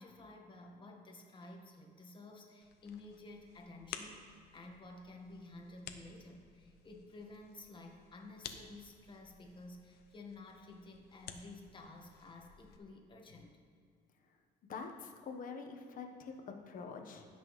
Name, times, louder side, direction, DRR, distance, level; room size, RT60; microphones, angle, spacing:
voice 1, 0.0-13.6, left 2 dB, 30° left, 2 dB, 1.5 m, -52 dB
sound 1, 2.6-12.8, left 8 dB, 75° left, 0.7 m, -54 dB
voice 2, 14.7-17.2, left 5 dB, 55° left, 4 dB, 1.2 m, -45 dB
15.5 x 6.1 x 3.2 m, 2.3 s
cardioid pair, 110°, 17 cm